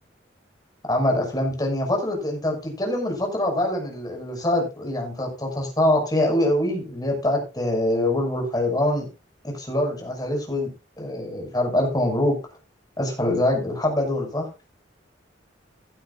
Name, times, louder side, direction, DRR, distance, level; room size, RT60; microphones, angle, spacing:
voice 1, 0.9-9.1 9.4-12.4 13.0-14.5, left 1 dB, 20° left, 2 dB, 6.1 m, -24 dB
17.0 x 12.0 x 2.5 m, 0.28 s
head